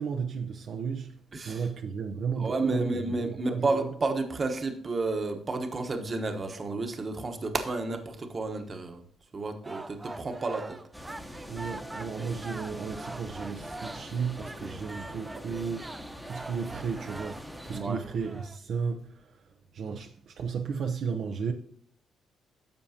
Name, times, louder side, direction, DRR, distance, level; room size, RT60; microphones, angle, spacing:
voice 1, 0.0-1.2 1.5-3.9 11.5-19.4 19.7-21.5, right 6 dB, 65° right, 0.7 m, -34 dB
voice 2, 2.4-9.0 9.3-10.8 17.7-18.0, right 3 dB, 35° right, 1.1 m, -31 dB
sound 1, 9.6-18.6, right 2 dB, 20° right, 0.5 m, -44 dB
sound 2, 10.9-17.8, equal, ahead, 1.0 m, -43 dB
10.5 x 7.0 x 2.8 m
cardioid pair, 90°, 0 cm